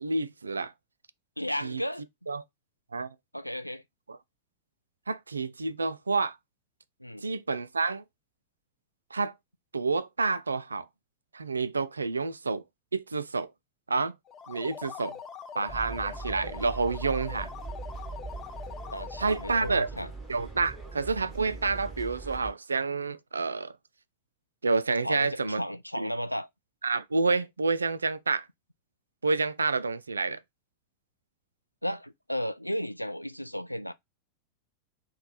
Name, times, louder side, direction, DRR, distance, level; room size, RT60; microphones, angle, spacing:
voice 1, 0.0-0.7 1.6-1.8 2.3-2.4 2.9-3.1 4.1-4.2 5.1-6.4 7.2-8.0 9.1-9.3 9.7-10.9 11.3-12.6 12.9-13.5 13.9-14.1 14.5-15.1 15.6-17.5 19.2-19.9 20.3-23.7 24.6-25.6 26.0-26.1 26.8-28.5 29.2-30.4, right 4 dB, 75° right, 0.3 m, -29 dB
voice 2, 1.4-2.1 3.3-3.8 7.0-7.2 15.1-15.2 18.9-20.1 25.0-26.5 31.8-33.9, equal, 90° left, 0.3 m, -34 dB
sound 1, 14.2-19.9, left 7 dB, 30° left, 0.5 m, -43 dB
sound 2, 15.7-22.5, right 3 dB, 5° right, 1.1 m, -41 dB
3.1 x 2.2 x 4.1 m
figure-of-eight pair, 90°, 0 cm